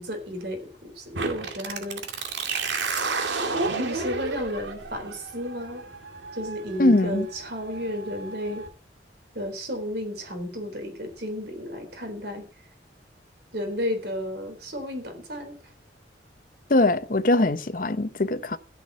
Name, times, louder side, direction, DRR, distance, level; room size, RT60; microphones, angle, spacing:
voice 1, 0.0-2.3 3.7-5.9 6.3-8.7 9.3-12.5 13.5-15.6, equal, 60° right, 4.0 m, -33 dB
sound 1, 1.1-8.7, right 4 dB, 85° right, 2.3 m, -32 dB
voice 2, 6.8-7.3 16.7-18.6, left 2 dB, 50° left, 0.8 m, -21 dB
14.0 x 6.1 x 8.7 m
head